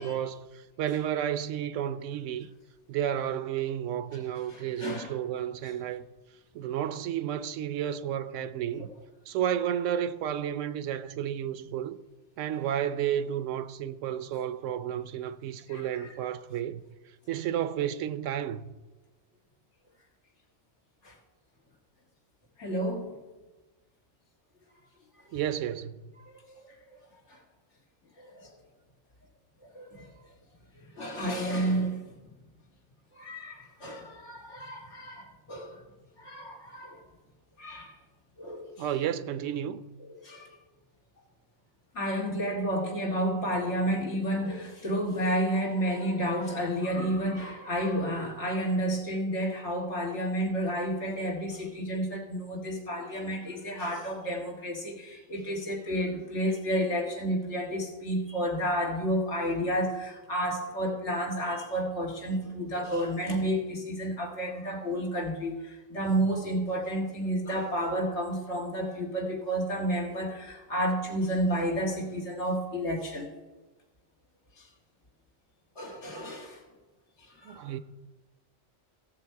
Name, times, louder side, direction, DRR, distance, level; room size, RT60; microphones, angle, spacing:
voice 1, 0.0-2.5 2.9-6.0 6.5-8.9 9.3-12.0 12.4-16.8 17.3-18.7 25.3-26.1 38.8-39.9 77.4-77.8, right 10 dB, 90° right, 1.0 m, -32 dB
voice 2, 4.5-5.1 8.8-8.9 15.7-16.1 21.0-21.2 22.6-23.2 26.2-26.7 27.3-27.4 28.2-28.5 29.7-30.1 30.7-32.0 33.2-35.8 36.2-37.0 37.6-38.0 38.4-38.9 40.2-40.5 41.9-73.3 74.6-74.7 75.8-76.6 77.4-77.7, equal, 70° left, 2.3 m, -31 dB
16.0 x 7.1 x 4.6 m
omnidirectional pair, 1.2 m